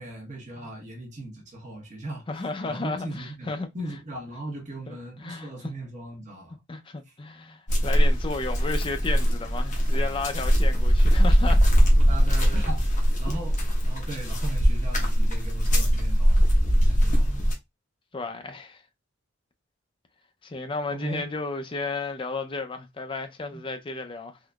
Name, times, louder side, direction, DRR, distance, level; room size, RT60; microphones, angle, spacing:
voice 1, 0.0-6.6 12.0-16.5 16.8-17.4 20.9-21.3 23.5-23.6, right 1 dB, 40° right, 1.2 m, -38 dB
voice 2, 2.3-3.7 4.9-5.5 6.7-11.6 18.1-18.8 20.4-24.4, left 3 dB, 25° left, 0.5 m, -33 dB
sound 1, 7.7-17.5, equal, 40° left, 1.1 m, -21 dB
3.8 x 3.0 x 2.3 m
head